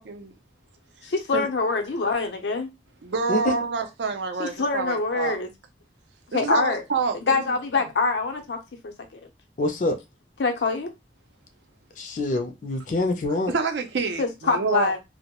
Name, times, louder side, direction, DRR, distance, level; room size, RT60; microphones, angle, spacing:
voice 1, 1.0-2.7 4.4-5.5 6.3-6.8 7.2-8.6 8.8-9.2 10.4-10.9 14.2-15.0, left 4 dB, 90° left, 0.6 m, -25 dB
voice 2, 3.0-5.4 6.3-7.2 13.5-14.9, right 4 dB, 90° right, 0.5 m, -27 dB
voice 3, 9.6-10.0 12.0-13.5, left 2 dB, 45° left, 0.4 m, -25 dB
2.2 x 2.0 x 2.8 m
head